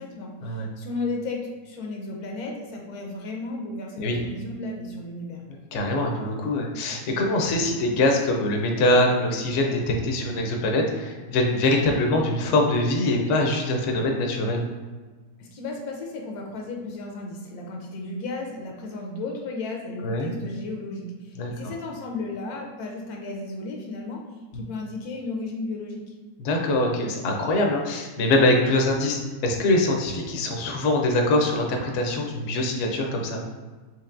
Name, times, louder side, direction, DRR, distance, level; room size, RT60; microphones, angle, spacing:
voice 1, 0.0-5.4 15.4-24.2 24.5-26.2, left 3 dB, 80° left, 1 dB, 1.1 m, -34 dB
voice 2, 5.7-14.6 20.0-20.3 21.4-21.5 24.5-24.6 26.4-33.4, left 1 dB, 65° left, 2 dB, 0.8 m, -23 dB
4.5 x 3.0 x 2.5 m, 1.4 s
omnidirectional pair, 1.6 m